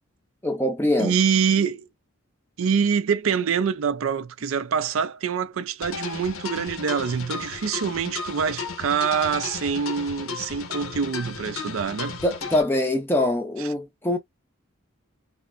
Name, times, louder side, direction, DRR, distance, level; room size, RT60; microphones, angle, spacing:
voice 1, 0.4-1.2 12.2-14.2, left 1 dB, 10° left, 0.5 m, -23 dB
voice 2, 1.0-1.9 2.6-12.2, right 6 dB, 80° right, 0.4 m, -25 dB
sound 1, 5.8-12.6, left 5 dB, 85° left, 0.8 m, -34 dB
5.5 x 2.0 x 2.4 m
head